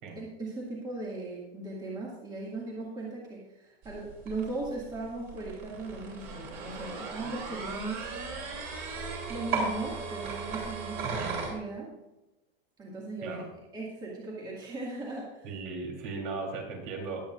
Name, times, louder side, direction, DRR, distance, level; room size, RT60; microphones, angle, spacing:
voice 1, 0.2-8.0 9.3-12.0 12.8-13.4 13.7-15.5, right 3 dB, 15° right, -4 dB, 2.1 m, -38 dB
sound 1, 3.8-11.5, right 4 dB, 30° right, 3.7 m, -37 dB
voice 2, 11.0-11.4 13.2-13.4 15.4-17.2, right 4 dB, 50° right, 1 dB, 3.6 m, -37 dB
20.5 x 8.7 x 2.5 m, 0.96 s
supercardioid pair, 170°, 31 cm